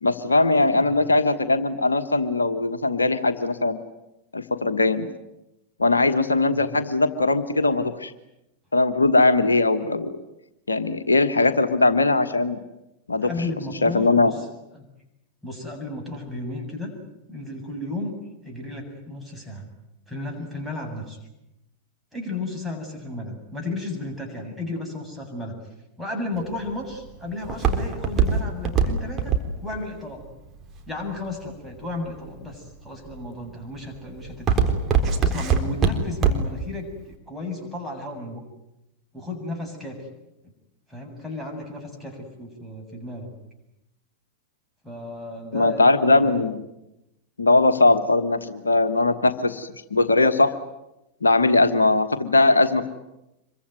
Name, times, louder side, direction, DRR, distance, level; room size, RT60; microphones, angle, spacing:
voice 1, 0.0-3.8 4.3-5.1 5.8-8.1 8.7-10.2 10.7-12.6 13.1-13.3 13.8-14.3 45.5-46.7 47.4-50.5 51.2-52.9, left 2 dB, 75° left, 8 dB, 1.4 m, -20 dB
voice 2, 13.2-14.4 14.7-14.8 15.4-16.9 17.3-18.1 18.4-19.7 20.1-21.2 22.1-25.6 26.0-29.3 29.6-30.2 30.9-34.5 35.2-38.4 39.1-40.0 40.9-43.3 44.8-46.5, left 2 dB, 5° right, 1 dB, 7.6 m, -34 dB
Walk footsteps, 26.4-31.5 32.1-32.5 33.1-33.4 33.8-36.6 37.0-37.1, right 6 dB, 25° right, 3.9 m, -22 dB
26.0 x 23.5 x 9.4 m, 0.90 s
figure-of-eight pair, 90°, 0 cm